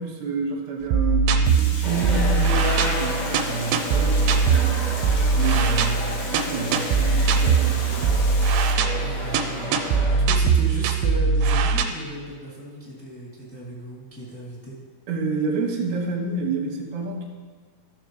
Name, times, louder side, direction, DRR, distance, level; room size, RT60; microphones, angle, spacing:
voice 1, 0.0-4.7 5.3-6.0 6.3-7.9 15.1-17.3, right 4 dB, 60° right, 0 dB, 2.6 m, -29 dB
sound 1, 0.9-11.8, right 5 dB, 80° right, 2.6 m, -21 dB
Water, 1.4-8.7, left 3 dB, 65° left, 2.2 m, -38 dB
sound 2, 1.8-10.2, left 1 dB, 30° left, 0.8 m, -32 dB
voice 2, 5.3-6.0 8.9-14.8, equal, 5° left, -8 dB, 1.8 m, -36 dB
15.0 x 6.7 x 3.2 m, 1.5 s
omnidirectional pair, 4.8 m